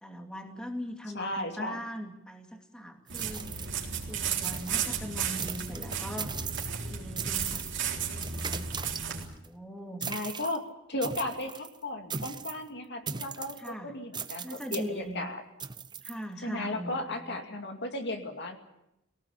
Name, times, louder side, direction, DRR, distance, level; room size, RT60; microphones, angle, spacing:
voice 1, 0.0-3.5 4.1-6.3 6.7-8.7 9.1-10.1 11.2-11.3 13.6-14.0 14.4-15.3 16.0-17.4, equal, 5° left, 3 dB, 2.4 m, -41 dB
voice 2, 1.1-1.8 10.1-10.6 10.9-15.4 16.4-18.6, left 1 dB, 60° left, 4 dB, 2.5 m, -35 dB
sound 1, 3.1-4.1 4.4-5.0 5.4-6.9 7.2-7.8 8.2-9.5 10.0-10.6 11.0-11.7 12.1-12.6 13.1-13.7 14.1-14.9 15.6-16.1, right 6 dB, 20° right, 0.8 m, -38 dB
sound 2, 3.1-9.2, right 7 dB, 60° right, 3.9 m, -34 dB
23.0 x 18.0 x 8.4 m, 0.87 s
head